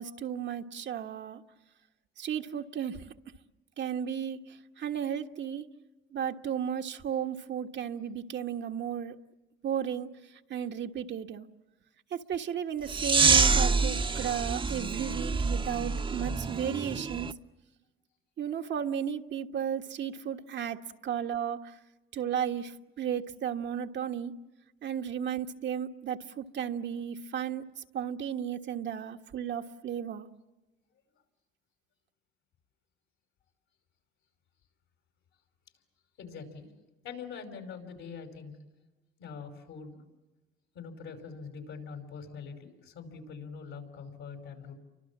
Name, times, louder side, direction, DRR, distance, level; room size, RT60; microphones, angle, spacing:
voice 1, 0.0-1.4 2.2-3.0 3.8-5.7 6.1-9.1 9.6-10.1 10.5-11.5 12.1-17.3 18.4-21.7 22.1-24.3 24.8-27.6 27.9-30.3, right 8 dB, 65° right, 6 dB, 1.5 m, -34 dB
sound 1, 12.9-17.3, right 4 dB, 25° right, 0.9 m, -27 dB
voice 2, 36.2-36.7 37.0-38.5 39.2-40.0 40.7-44.8, left 5 dB, 85° left, 6 dB, 5.7 m, -43 dB
30.0 x 24.5 x 7.4 m, 1.1 s
cardioid pair, 90°, 20 cm